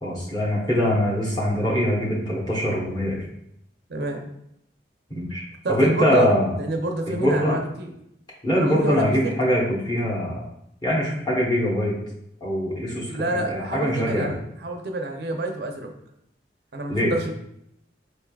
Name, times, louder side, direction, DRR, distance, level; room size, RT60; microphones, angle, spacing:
voice 1, 0.0-3.2 5.1-5.4 5.7-6.5 7.1-7.6 8.4-10.4 10.8-11.9 12.4-14.3 16.9-17.1, equal, 25° left, -5 dB, 1.1 m, -23 dB
voice 2, 5.6-6.3 6.6-7.9 8.6-9.3 13.1-15.9 16.7-17.3, right 1 dB, 65° right, 3 dB, 0.6 m, -27 dB
5.2 x 3.4 x 2.3 m, 0.77 s
head